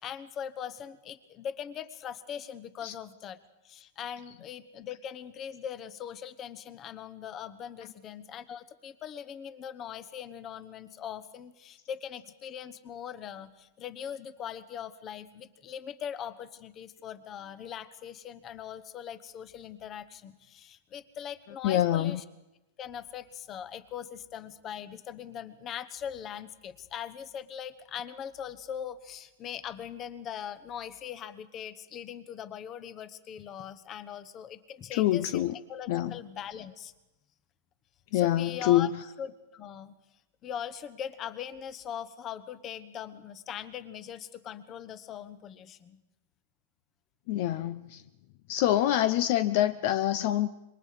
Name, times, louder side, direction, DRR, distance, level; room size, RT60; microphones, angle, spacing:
voice 1, 0.0-3.4 3.6-22.2 22.8-36.9 38.1-38.9 39.2-39.9 40.4-46.0, left 9 dB, 30° left, 14 dB, 1.0 m, -41 dB
voice 2, 21.6-22.2 34.9-35.6 35.9-36.2 38.1-39.0 47.3-48.0 48.5-50.5, left 13 dB, 55° left, 13 dB, 0.7 m, -26 dB
27.0 x 22.5 x 5.0 m, 0.99 s
supercardioid pair, 145°, 0 cm